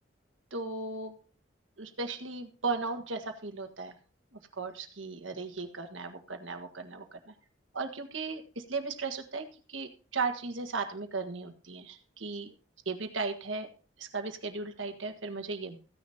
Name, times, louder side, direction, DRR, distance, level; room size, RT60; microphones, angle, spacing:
voice 1, 0.5-1.1 1.8-3.9 4.5-7.3 7.7-12.5 12.9-13.7 14.0-15.8, right 4 dB, 80° right, 7 dB, 1.6 m, -36 dB
15.5 x 9.9 x 2.8 m, 0.37 s
head